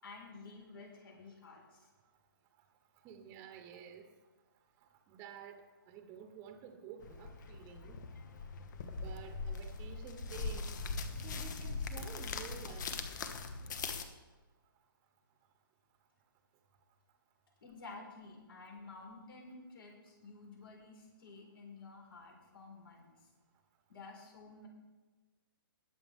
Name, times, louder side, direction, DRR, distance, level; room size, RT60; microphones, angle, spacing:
voice 1, 0.0-1.9 17.6-23.3 23.9-24.7, left 3 dB, 75° left, 0 dB, 4.2 m, -52 dB
voice 2, 3.0-4.1 5.1-8.0 8.9-10.8 11.2-13.0, right 7 dB, 25° right, 4 dB, 1.1 m, -51 dB
sound 1, 7.0-14.0, left 4 dB, 55° left, 1.1 m, -41 dB
20.5 x 7.2 x 3.7 m, 1.2 s
hypercardioid pair, 150°, 12 cm